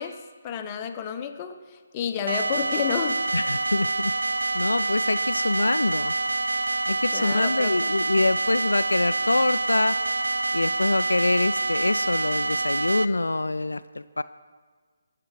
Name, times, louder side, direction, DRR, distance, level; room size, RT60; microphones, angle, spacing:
voice 1, 0.0-3.2 7.1-7.8, left 7 dB, 25° left, 6 dB, 0.8 m, -31 dB
sound 1, 2.3-13.1, right 2 dB, 80° right, 0.5 m, -26 dB
voice 2, 3.3-4.1 4.5-6.1 6.9-10.0 10.5-14.2, left 2 dB, 85° left, 12 dB, 0.3 m, -25 dB
19.0 x 6.8 x 4.6 m, 1.5 s
figure-of-eight pair, 145°, 0 cm